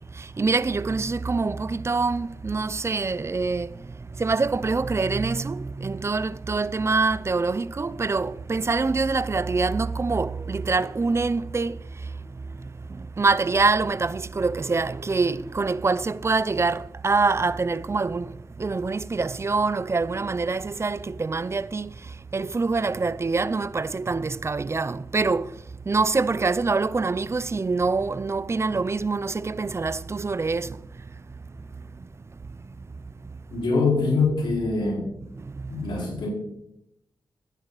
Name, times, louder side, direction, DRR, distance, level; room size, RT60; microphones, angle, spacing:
voice 1, 0.2-3.7 4.2-11.8 13.0-18.3 18.6-21.9 22.3-25.5 25.9-30.8, right 4 dB, 35° right, 0.5 m, -25 dB
voice 2, 33.5-35.1 35.7-36.3, left 4 dB, 75° left, 4.4 m, -24 dB
12.5 x 10.5 x 4.1 m
cardioid pair, 55°, 8 cm